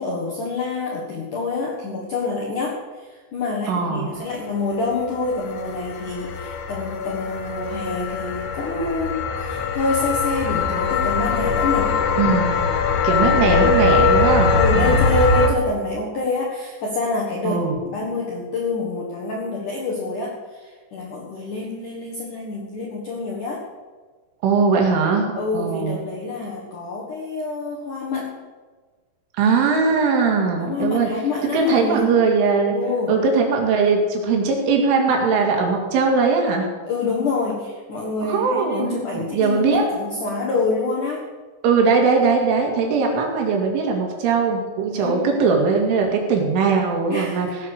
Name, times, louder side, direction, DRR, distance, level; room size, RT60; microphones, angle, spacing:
voice 1, 0.0-12.0 14.5-23.6 25.4-28.4 30.6-32.1 32.7-33.2 36.9-41.3 44.9-45.3 47.1-47.5, left 3 dB, 65° left, -2 dB, 2.0 m, -27 dB
voice 2, 3.7-4.2 12.2-12.5 13.0-15.0 17.4-17.8 24.4-26.0 29.4-31.1 31.4-32.8 33.1-36.7 38.2-39.8 41.6-47.5, right 4 dB, 70° right, 1 dB, 4.5 m, -20 dB
sound 1, 4.9-15.5, left 4 dB, 85° left, 4.1 m, -21 dB
17.0 x 8.8 x 6.7 m, 1.4 s
omnidirectional pair, 6.0 m